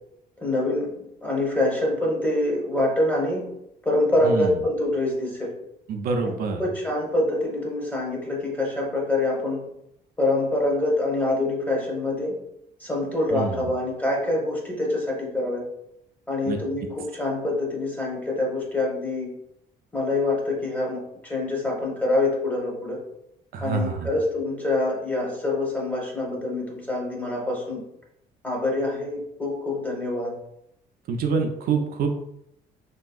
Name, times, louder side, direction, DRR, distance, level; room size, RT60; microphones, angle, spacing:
voice 1, 0.4-3.5 3.8-5.5 6.2-6.3 6.6-9.6 10.2-12.4 12.8-15.6 16.3-19.3 19.9-23.0 23.6-27.8 28.4-30.4, left 2 dB, 10° left, -2 dB, 1.0 m, -25 dB
voice 2, 4.2-4.6 5.9-6.6 13.3-13.6 16.5-16.6 23.5-24.1 31.1-32.1, right 4 dB, 60° right, 4 dB, 0.4 m, -26 dB
3.4 x 2.6 x 2.3 m, 0.79 s
cardioid pair, 110°, 17 cm